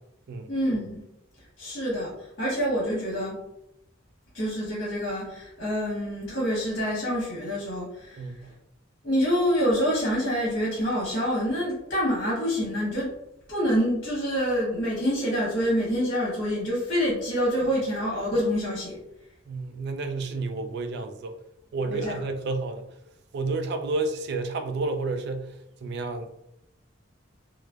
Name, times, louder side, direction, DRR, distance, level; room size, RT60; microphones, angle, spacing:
voice 1, 0.5-1.0 1.6-3.4 4.3-8.5 9.0-13.2 13.5-19.0 21.9-22.2, equal, 50° left, -7 dB, 1.0 m, -27 dB
voice 2, 8.2-8.5 19.5-21.4 21.7-22.9 23.3-26.3, right 3 dB, 55° right, 6 dB, 0.3 m, -30 dB
3.1 x 2.0 x 2.3 m, 0.82 s
head